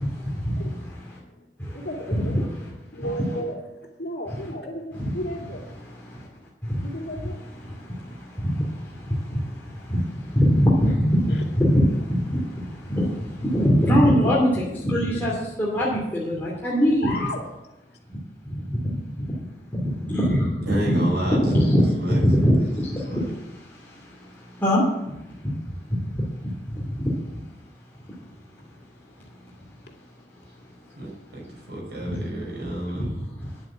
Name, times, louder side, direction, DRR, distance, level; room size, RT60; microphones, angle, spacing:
voice 1, 0.0-1.2 1.6-1.8 2.1-2.7 3.0-3.1 4.9-5.1 5.8-6.3 6.6-6.8 7.6-17.2 18.1-18.2 18.4-19.0 19.3-19.4 19.7-24.8 25.4-27.4 32.1-32.2 32.9-33.1 33.4-33.5, equal, 10° left, 2.7 m, -24 dB
voice 2, 1.1-1.4 1.7-2.4 2.9-3.6 3.8-5.9 6.2-6.3 6.8-7.9 11.3-11.4 17.0-17.4 17.9-18.0 29.9-30.0, equal, 65° left, 2.5 m, -34 dB
voice 3, 20.6-22.2 22.5-22.7 23.1-23.3 31.0-33.1, right 1 dB, 75° right, 5.4 m, -30 dB
10.0 x 8.6 x 7.4 m
head